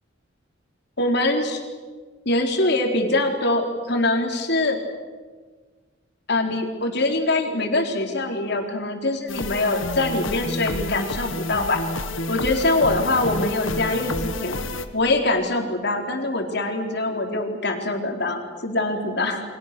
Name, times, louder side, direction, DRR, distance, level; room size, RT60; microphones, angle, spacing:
voice 1, 1.0-1.6 2.3-4.8 6.3-11.8 12.3-14.6 14.9-19.4, left 2 dB, 55° left, 3 dB, 4.1 m, -23 dB
sound 1, 9.3-14.9, left 2 dB, 80° left, 1.9 m, -29 dB
29.5 x 24.5 x 6.9 m, 1.4 s
head